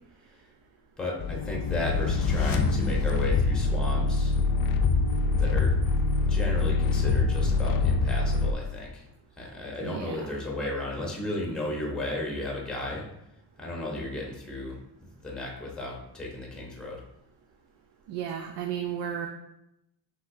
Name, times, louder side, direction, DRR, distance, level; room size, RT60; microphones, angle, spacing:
voice 1, 1.0-4.3 5.4-9.0 9.4-13.1 13.6-14.8 15.2-17.0, left 1 dB, ahead, -2 dB, 0.8 m, -34 dB
sound 1, 1.2-8.5, left 4 dB, 55° left, 0.5 m, -24 dB
voice 2, 9.8-10.4 18.1-19.3, right 9 dB, 85° right, 4 dB, 0.5 m, -34 dB
5.6 x 3.4 x 2.6 m, 0.84 s
cardioid pair, 150°, 40 cm